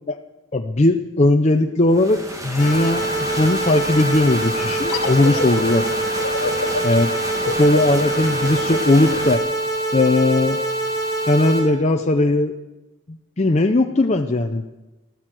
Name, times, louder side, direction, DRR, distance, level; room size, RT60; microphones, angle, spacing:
voice 1, 0.5-5.9 6.8-7.1 7.4-9.4 9.9-10.6 11.3-12.5 13.4-14.8, left 2 dB, 30° left, 4 dB, 0.6 m, -18 dB
sound 1, 1.9-9.4, right 1 dB, 15° right, 1.8 m, -31 dB
sound 2, 2.6-11.6, right 2 dB, 15° left, 3.5 m, -25 dB
sound 3, 4.9-10.2, left 4 dB, 75° left, 1.1 m, -30 dB
13.5 x 13.0 x 7.6 m, 1.1 s
head